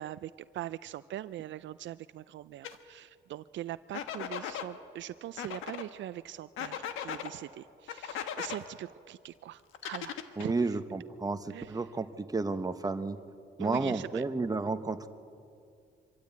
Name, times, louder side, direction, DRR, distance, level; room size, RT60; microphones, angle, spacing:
voice 1, 0.0-10.8 11.5-11.8 13.6-14.2, right 13 dB, 70° right, 15 dB, 0.4 m, -42 dB
sound 1, 2.6-2.8 3.9-4.7 5.4-5.8 6.6-7.3 7.9-8.6 9.7-10.5, left 9 dB, 90° left, 1.3 m, -38 dB
voice 2, 10.4-13.2 13.6-15.1, right 3 dB, 20° right, 9 dB, 1.1 m, -32 dB
25.0 x 13.5 x 8.5 m, 2.4 s
cardioid pair, 90°, 20 cm